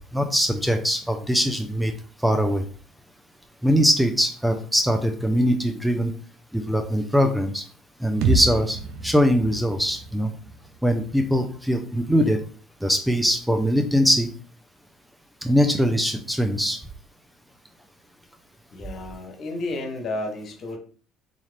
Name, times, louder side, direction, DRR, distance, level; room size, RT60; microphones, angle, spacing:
voice 1, 0.1-1.9 2.2-2.6 3.6-6.1 6.5-7.6 8.0-8.8 9.0-10.3 10.8-12.4 12.8-14.3 15.4-16.8, equal, 5° right, 5 dB, 0.5 m, -22 dB
sound 1, 8.2-12.1, right 3 dB, 70° right, 0.5 m, -30 dB
voice 2, 18.7-20.8, left 2 dB, 50° left, 3 dB, 1.0 m, -32 dB
4.0 x 2.4 x 3.3 m, 0.42 s
hypercardioid pair, 70°, 0 cm